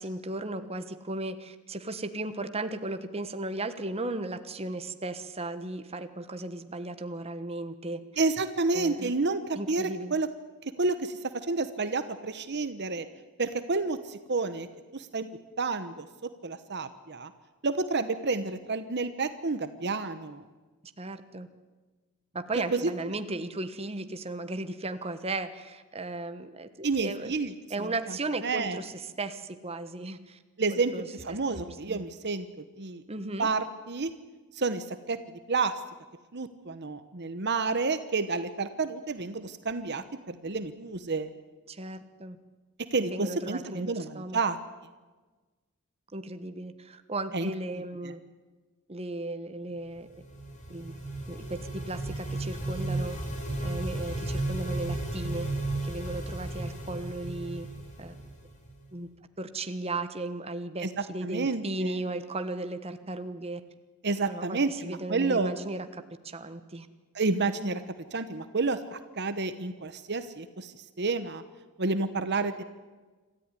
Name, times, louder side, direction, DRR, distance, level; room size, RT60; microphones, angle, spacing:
voice 1, 0.0-8.0 8.7-9.1 9.5-10.1 21.0-21.5 22.3-27.3 27.7-30.4 30.7-32.0 33.1-33.5 41.7-42.4 42.9-44.4 46.1-48.2 48.9-50.1 50.7-50.9 51.3-53.2 53.6-55.5 55.8-57.7 58.0-58.2 58.9-59.1 59.4-63.6 64.3-66.9, right 2 dB, 25° right, 9 dB, 1.2 m, -36 dB
voice 2, 8.2-10.3 10.8-13.1 13.4-14.7 14.9-15.3 15.6-16.1 16.4-17.3 17.6-20.4 22.7-22.8 26.8-27.5 27.8-27.9 28.4-28.8 30.6-30.9 31.2-33.0 33.4-34.1 34.5-35.2 35.5-35.8 36.3-41.3 42.9-44.6 47.3-47.5 48.0-48.1 60.8-60.9 61.2-62.0 64.0-65.5 67.1-67.8 68.1-71.4 71.8-72.6, right 3 dB, 50° right, 11 dB, 1.1 m, -30 dB
sound 1, 50.0-58.8, right 2 dB, 35° left, 4.3 m, -34 dB
26.5 x 14.0 x 9.9 m, 1.3 s
head